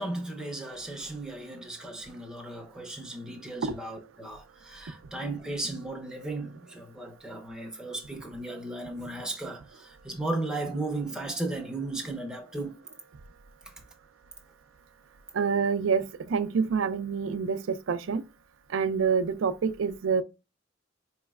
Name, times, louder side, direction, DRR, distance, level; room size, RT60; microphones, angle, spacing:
voice 1, 0.0-12.8, right 2 dB, 5° right, 0.6 m, -35 dB
voice 2, 15.3-18.2 18.7-20.2, right 6 dB, 75° right, 0.4 m, -27 dB
4.8 x 3.1 x 2.3 m
head